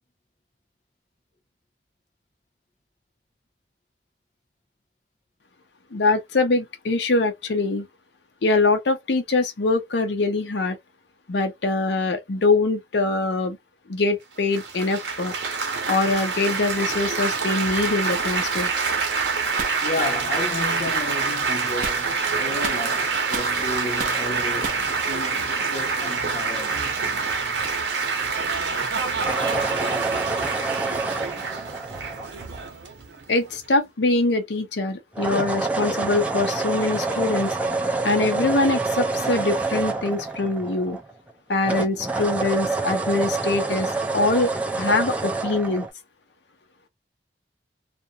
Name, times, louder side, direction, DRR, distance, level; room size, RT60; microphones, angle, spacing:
voice 1, 5.9-7.9 8.4-10.8 11.3-13.6 13.9-15.3 15.9-18.7 33.3-37.6 38.0-41.0 41.5-44.5 44.8-45.9, left 3 dB, 85° left, 0.7 m, -23 dB
Laughter / Applause / Chatter, 14.5-33.7, right 4 dB, 85° right, 0.8 m, -26 dB
sound 1, 19.6-19.8 21.8-22.1 22.6-23.6 24.0-24.2 24.6-24.9, right 4 dB, 50° right, 0.7 m, -32 dB
voice 2, 19.8-26.9 30.2-30.3, left 2 dB, 40° left, 0.6 m, -32 dB
sound 2, 29.2-32.7 35.1-41.3 41.6-45.9, right 3 dB, 10° right, 0.4 m, -27 dB
2.5 x 2.1 x 2.6 m
head